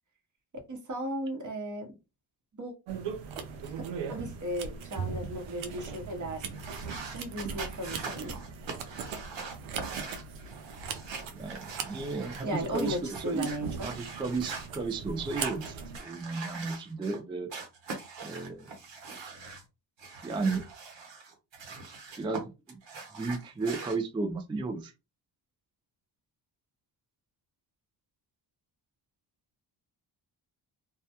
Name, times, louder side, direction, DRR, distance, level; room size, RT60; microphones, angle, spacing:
voice 1, 0.7-1.9 2.6-2.7 3.6-3.7 4.1-6.4 7.1-8.3 12.4-13.9, right 1 dB, 40° right, 0.9 m, -35 dB
sound 1, 2.9-16.0, right 6 dB, 85° right, 0.6 m, -40 dB
sound 2, 6.5-12.4 12.7-14.7 15.2-17.2 17.5-19.6 20.0-22.4 22.7-24.0, right 4 dB, 65° right, 1.0 m, -42 dB
voice 2, 11.3-13.5 13.8-17.5 18.2-18.7 20.2-20.6 22.2-22.8 23.1-24.9, right 3 dB, 10° right, 0.3 m, -34 dB
2.1 x 2.1 x 2.8 m
cardioid pair, 65°, 47 cm